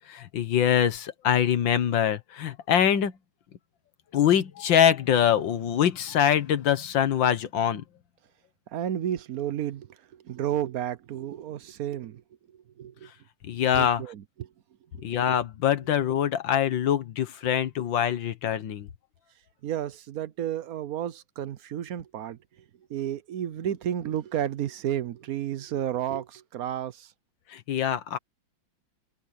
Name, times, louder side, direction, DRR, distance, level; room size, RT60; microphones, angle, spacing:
voice 1, 0.1-3.1 4.1-7.8 13.5-14.0 15.0-18.9 27.5-28.2, left 9 dB, 75° left, 1.9 m, -24 dB
voice 2, 8.7-12.2 12.5-13.1 13.6-14.5 14.9-15.0 19.6-22.6 22.9-27.1, right 10 dB, 60° right, 1.0 m, -32 dB
omnidirectional pair, 2.1 m